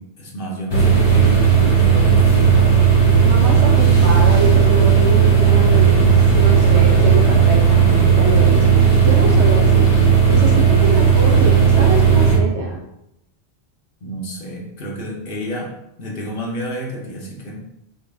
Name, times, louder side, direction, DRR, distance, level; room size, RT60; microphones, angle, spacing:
voice 1, 0.0-2.5 14.0-15.7 16.0-17.6, right 1 dB, 60° left, -1 dB, 1.1 m, -30 dB
sound 1, 0.7-12.3, right 6 dB, 25° left, 1.1 m, -13 dB
voice 2, 3.2-8.6 9.0-9.9 10.3-12.8, right 2 dB, 85° right, -1 dB, 1.1 m, -25 dB
5.5 x 2.5 x 3.4 m, 0.81 s
omnidirectional pair, 1.1 m